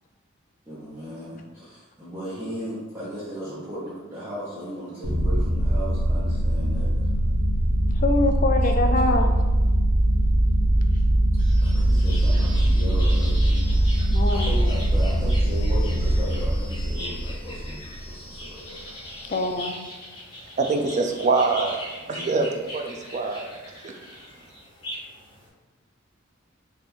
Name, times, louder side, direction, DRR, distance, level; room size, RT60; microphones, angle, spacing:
voice 1, 0.7-7.1 8.6-9.2 11.6-13.8 14.3-18.8 22.1-22.5, equal, 10° right, -12 dB, 0.8 m, -36 dB
sound 1, 5.0-17.9, right 1 dB, 75° right, 1.0 m, -21 dB
voice 2, 7.9-9.3 14.1-14.7 19.3-19.8, left 2 dB, 40° left, 4 dB, 0.4 m, -24 dB
sound 2, 11.4-25.5, equal, 20° left, 1.1 m, -40 dB
voice 3, 20.6-21.8 22.1-22.5 22.7-23.5 23.8-23.9, right 3 dB, 35° right, 4 dB, 0.4 m, -24 dB
3.4 x 2.5 x 4.4 m, 1.2 s
head